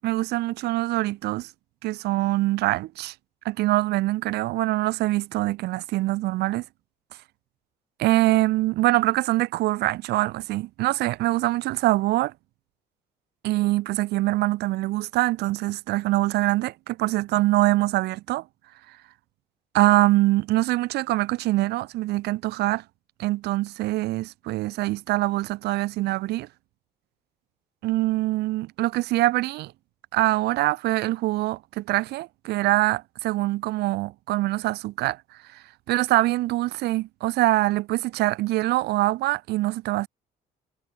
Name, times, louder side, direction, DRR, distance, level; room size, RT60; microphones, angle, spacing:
voice 1, 0.0-1.5 1.8-3.1 3.4-6.6 8.0-12.3 13.4-18.4 19.7-22.8 23.2-26.5 27.8-29.7 30.1-35.2 35.5-40.1, right 18 dB, 80° right, 0.7 m, -24 dB
cardioid pair, 110°, 17 cm